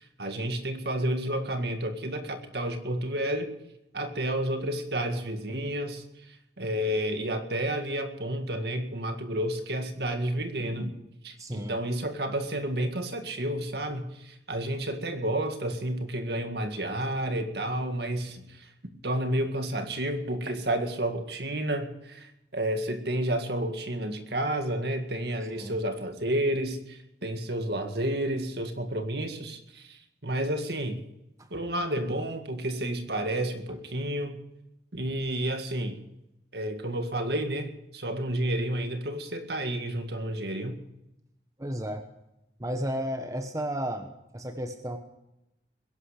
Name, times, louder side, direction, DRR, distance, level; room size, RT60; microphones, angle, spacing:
voice 1, 0.2-3.5 3.9-6.0 6.6-11.0 11.2-18.4 19.0-30.0 30.2-31.0 31.5-34.4 34.9-36.0 36.5-40.8, right 1 dB, 60° right, 6 dB, 1.9 m, -30 dB
voice 2, 11.4-11.8 25.5-25.8 41.6-42.0 42.6-45.0, equal, 20° right, 6 dB, 1.2 m, -33 dB
21.5 x 11.5 x 5.0 m, 0.87 s
head